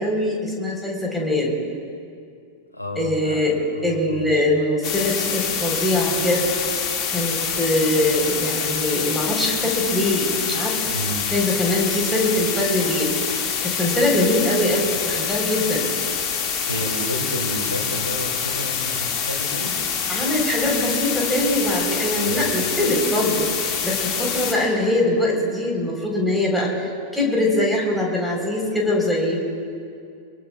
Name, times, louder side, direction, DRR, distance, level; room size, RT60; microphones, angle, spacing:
voice 1, 0.0-1.6 3.0-3.6 3.8-6.5 7.1-10.8 11.3-13.1 13.6-15.9 20.1-23.5 23.8-29.4, left 1 dB, 5° left, -2 dB, 4.3 m, -22 dB
voice 2, 2.7-3.4 3.7-4.4 10.9-11.2 16.6-19.8 22.2-22.5, equal, 85° left, 0 dB, 2.7 m, -31 dB
sound 1, 4.8-24.5, left 7 dB, 35° left, 2.3 m, -26 dB
25.0 x 22.5 x 2.5 m, 2.3 s
figure-of-eight pair, 90°, 0 cm